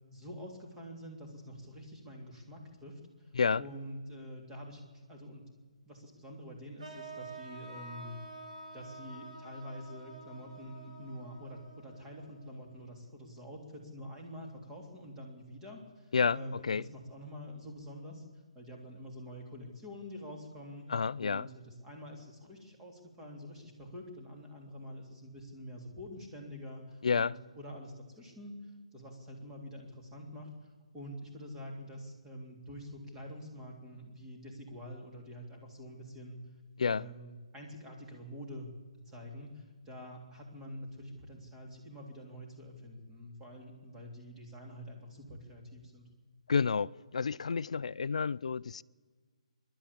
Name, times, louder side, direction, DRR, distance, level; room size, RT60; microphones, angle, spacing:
voice 1, 0.1-2.9 3.2-4.8 5.1-5.4 5.9-8.2 8.7-18.2 18.6-20.9 21.2-36.4 36.8-38.7 39.1-46.1, equal, 10° right, 3.6 m, -47 dB
sound 1, 6.8-12.9, right 2 dB, 80° right, 4.4 m, -49 dB
voice 2, 16.1-16.8 20.9-21.5 27.0-27.3 36.8-37.1 46.5-48.8, left 5 dB, 75° left, 0.5 m, -30 dB
26.0 x 12.0 x 8.6 m
hypercardioid pair, 155°, 4 cm